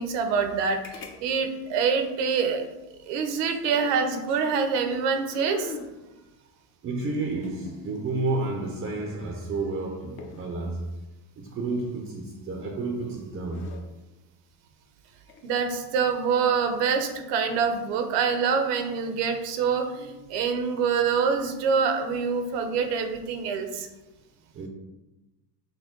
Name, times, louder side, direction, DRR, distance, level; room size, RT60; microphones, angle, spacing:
voice 1, 0.0-2.7 3.0-5.7 15.4-23.9, right 6 dB, 80° right, 0.8 m, -25 dB
sound 1, 0.8-1.2 1.4-1.5 3.4-4.7 5.3-6.0 7.2-8.4 10.2-10.6 12.4-12.8 13.3-13.8 15.2-15.5, left 4 dB, 30° left, 0.5 m, -42 dB
voice 2, 6.8-10.9 11.4-13.7 24.5-24.7, right 3 dB, 25° right, 0.5 m, -31 dB
6.2 x 2.2 x 3.7 m
cardioid pair, 135°, 45 cm